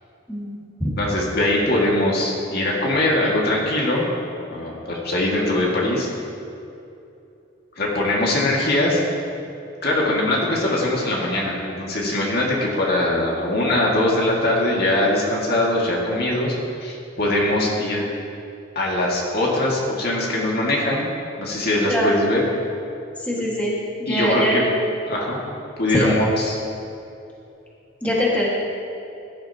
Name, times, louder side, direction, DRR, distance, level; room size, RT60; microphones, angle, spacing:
voice 1, 0.3-0.9 21.9-22.1 23.2-23.7 24.0-24.5 25.9-26.1 28.0-28.5, equal, 10° left, -6 dB, 1.9 m, -22 dB
voice 2, 1.0-4.0 4.5-6.1 7.8-9.0 9.8-18.0 18.8-21.1 21.4-22.4 23.4-23.5 24.1-24.6 25.1-25.4 25.8-26.6, left 1 dB, 55° left, -3 dB, 2.0 m, -21 dB
16.0 x 11.5 x 2.9 m, 2.8 s
head